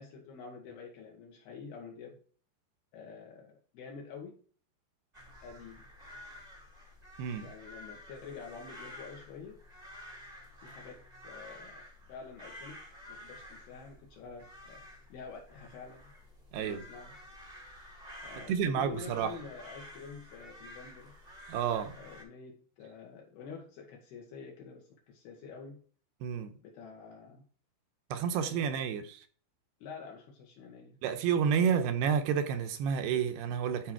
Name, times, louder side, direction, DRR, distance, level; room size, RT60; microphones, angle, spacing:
voice 1, 0.0-2.2 2.9-4.4 5.4-5.9 7.4-9.6 10.6-11.8 12.1-12.8 13.1-14.8 15.1-16.1 16.6-17.2 18.2-21.2 22.0-25.8 26.6-27.5 28.3-28.7 29.8-31.0 31.6-31.8, left 5 dB, 70° left, 3.3 m, -48 dB
sound 1, 5.1-22.2, left 1 dB, 25° right, 0.8 m, -51 dB
voice 2, 16.5-16.8 18.5-19.3 21.5-21.9 26.2-26.5 28.1-29.3 31.0-33.9, right 7 dB, 80° right, 2.7 m, -30 dB
12.5 x 4.6 x 4.6 m
omnidirectional pair, 5.0 m